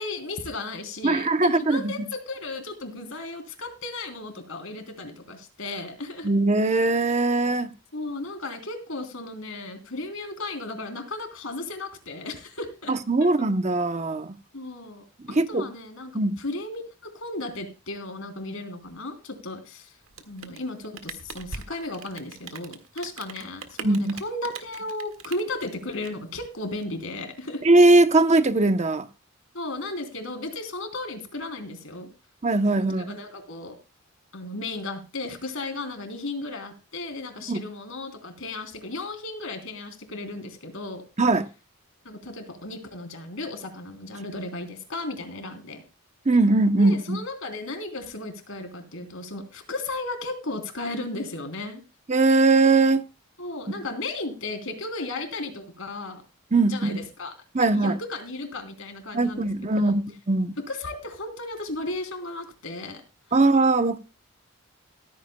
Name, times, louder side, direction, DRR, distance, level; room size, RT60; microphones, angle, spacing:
voice 1, 0.0-6.3 7.9-12.9 13.2-13.3 14.5-19.9 20.3-27.6 29.5-32.1 32.7-33.8 34.3-41.0 42.0-45.8 46.8-51.8 53.4-56.2 56.7-57.3 57.6-59.9 60.7-63.0 63.3-63.4, left 2 dB, 65° left, 3.4 m, -35 dB
voice 2, 1.0-1.9 6.2-7.7 12.9-14.3 15.3-15.7 16.1-16.4 23.8-24.1 27.6-29.1 32.4-33.1 37.5-37.6 41.2-41.5 46.3-47.2 52.1-53.0 56.5-57.0 57.5-58.0 59.1-60.0 60.3-60.6 63.3-64.0, right 2 dB, 30° right, 0.8 m, -20 dB
Rain, 20.0-26.8, right 5 dB, 65° right, 1.8 m, -42 dB
16.0 x 14.5 x 2.2 m
head